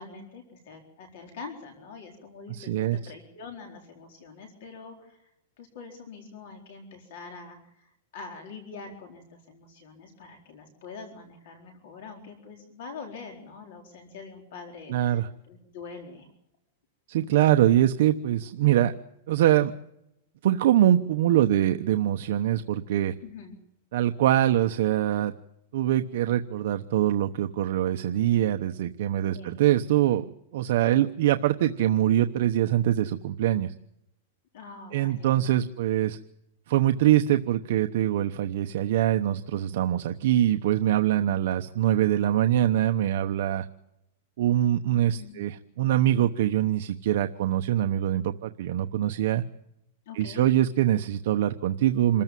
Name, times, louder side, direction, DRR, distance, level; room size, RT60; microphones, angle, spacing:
voice 1, 0.0-5.3 5.6-16.3 23.2-23.6 29.3-29.6 34.5-35.4 41.2-41.4 45.1-45.4 50.1-50.5, left 4 dB, 50° left, 3 dB, 4.3 m, -44 dB
voice 2, 2.5-3.0 14.9-15.3 17.1-18.9 19.3-19.7 20.4-23.1 23.9-25.3 25.7-30.2 30.5-33.7 34.9-36.2 36.7-43.7 44.4-49.4 50.1-52.2, right 12 dB, 50° right, 6 dB, 1.0 m, -23 dB
27.5 x 14.5 x 9.2 m, 0.81 s
supercardioid pair, 175°, 0 cm